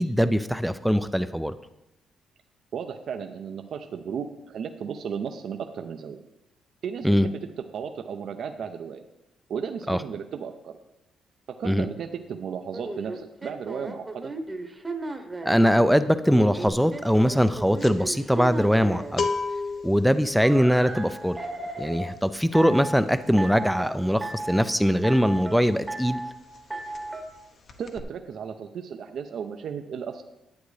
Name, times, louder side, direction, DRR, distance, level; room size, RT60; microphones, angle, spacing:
voice 1, 0.0-1.5 7.0-7.3 9.9-10.0 11.6-11.9 15.5-19.3 19.8-21.4 21.8-26.2, equal, ahead, 11 dB, 0.3 m, -22 dB
voice 2, 2.7-6.2 6.8-7.4 7.7-9.0 9.5-10.8 11.6-14.3 27.8-30.2, right 7 dB, 65° right, 6 dB, 0.5 m, -34 dB
sound 1, 12.7-15.7 16.2-19.2 20.4-22.1 22.5-23.0 23.4-23.9 24.2-24.7 25.0-25.6 25.9-26.3 26.7-27.2, right 2 dB, 15° right, 0.9 m, -35 dB
sound 2, 16.7-16.9 17.2-25.8 26.1-26.3 26.5-27.4 27.7-28.0, left 4 dB, 55° left, 0.8 m, -35 dB
10.5 x 8.3 x 3.3 m, 0.93 s
cardioid pair, 90°, 0 cm